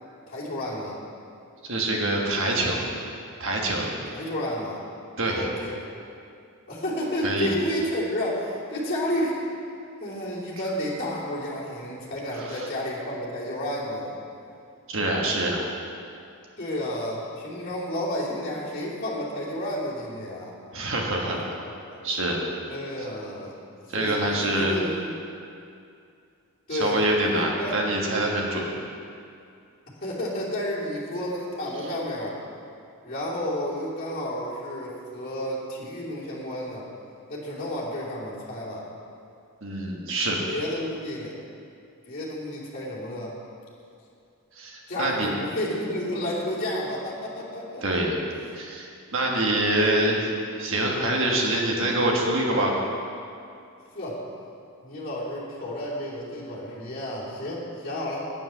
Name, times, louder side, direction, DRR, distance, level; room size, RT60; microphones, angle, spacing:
voice 1, 0.3-1.0 4.1-4.8 5.2-5.8 6.7-9.4 10.0-14.2 16.6-20.5 21.2-22.0 22.7-23.5 24.0-25.1 26.7-27.7 30.0-32.4 33.0-36.9 37.3-38.8 40.5-41.4 42.1-43.3 44.9-47.8 49.8-50.1 53.9-54.2 54.8-58.3, left 1 dB, 40° left, -8 dB, 2.7 m, -31 dB
voice 2, 1.6-2.8 3.4-3.9 5.2-5.5 7.2-7.5 12.3-12.7 14.9-15.7 20.7-21.4 22.0-22.4 23.9-24.8 26.7-28.7 39.6-40.4 44.6-45.3 47.8-48.2 48.5-52.7, right 1 dB, 60° right, -1 dB, 1.6 m, -25 dB
8.9 x 7.6 x 6.8 m, 2.5 s
head